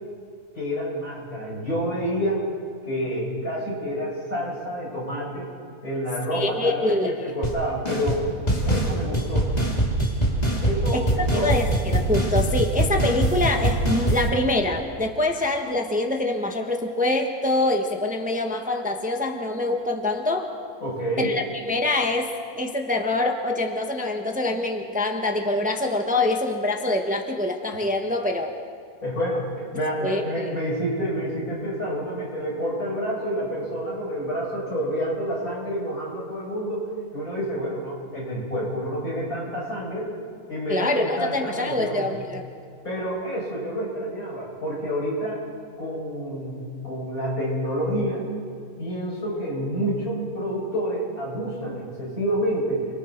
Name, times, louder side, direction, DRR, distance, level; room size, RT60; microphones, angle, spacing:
voice 1, 0.6-2.4 2.8-5.5 5.8-8.3 8.7-9.5 10.6-11.5 20.8-21.3 29.0-29.5 29.7-40.1 40.5-42.1 42.8-45.4 45.8-48.2 48.8-52.8, equal, 70° left, -6 dB, 8.6 m, -28 dB
voice 2, 6.3-7.3 10.9-20.5 21.2-22.3 22.6-28.5 30.0-30.5 40.7-42.4, left 2 dB, 5° right, 3 dB, 1.2 m, -25 dB
sound 1, 7.4-7.6 7.8-8.2 8.5-14.3, right 1 dB, 25° left, 2.9 m, -23 dB
29.0 x 23.5 x 4.6 m, 2.2 s
omnidirectional pair, 1.6 m